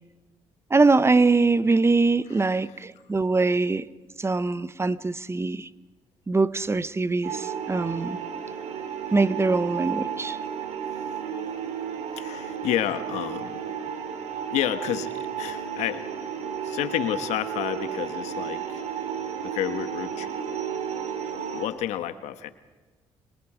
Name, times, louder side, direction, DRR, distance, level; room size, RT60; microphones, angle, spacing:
voice 1, 0.7-3.9 4.2-5.7 6.3-8.2 9.1-10.4, right 3 dB, 25° right, 0.8 m, -23 dB
voice 2, 2.4-2.8 12.1-13.6 14.5-16.1 16.6-18.8 19.4-20.6 21.3-22.5, left 12 dB, 85° left, 1.3 m, -30 dB
sound 1, 7.2-21.7, right 8 dB, 80° right, 2.8 m, -33 dB
25.0 x 22.5 x 5.0 m
cardioid pair, 75°, 11 cm